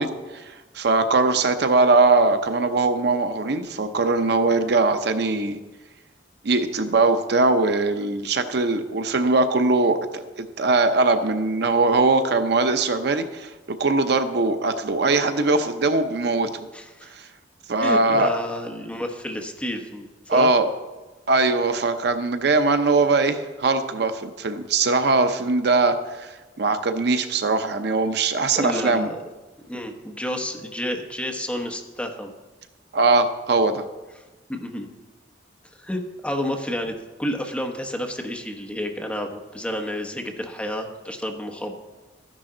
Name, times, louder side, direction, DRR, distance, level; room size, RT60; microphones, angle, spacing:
voice 1, 0.0-5.6 6.4-13.5 13.8-16.7 17.1-17.3 17.7-18.3 20.3-20.7 21.3-29.1 32.9-33.8, right 3 dB, 65° right, 8 dB, 0.7 m, -21 dB
voice 2, 16.7-17.1 17.8-20.5 28.6-29.2 29.7-32.3 34.5-34.9 35.8-41.7, left 1 dB, 5° left, 3 dB, 1.1 m, -30 dB
13.0 x 10.5 x 3.8 m, 1.2 s
head